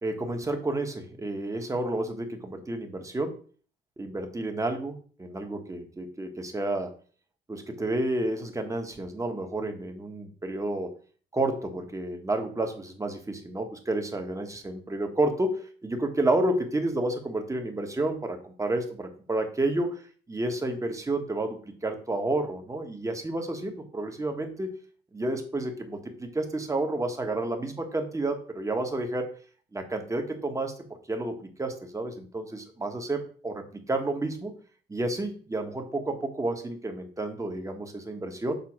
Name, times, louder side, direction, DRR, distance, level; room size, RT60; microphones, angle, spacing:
voice 1, 0.0-3.4 4.0-6.9 7.5-10.9 11.3-20.0 20.3-24.8 25.1-29.4 29.7-30.7 31.1-34.5 34.9-38.5, right 2 dB, 15° right, 4 dB, 1.3 m, -30 dB
6.9 x 3.7 x 6.0 m, 0.43 s
cardioid pair, 120°, 20 cm